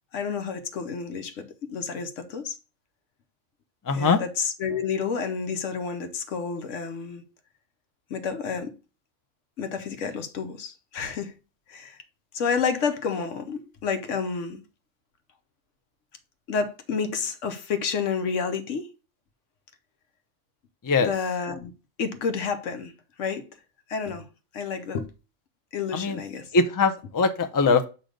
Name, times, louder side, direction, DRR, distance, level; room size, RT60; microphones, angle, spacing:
voice 1, 0.1-2.6 3.9-7.2 8.1-8.8 9.6-11.3 11.7-12.0 12.3-14.6 16.5-18.9 21.0-21.7 22.0-22.9 23.2-23.5 23.9-24.3 24.5-25.1 25.7-26.5, left 5 dB, 90° left, 1.2 m, -30 dB
voice 2, 3.9-4.2 20.8-21.1 25.9-26.2 26.5-27.9, left 4 dB, 35° left, 0.3 m, -22 dB
7.6 x 2.8 x 5.1 m
omnidirectional pair, 1.2 m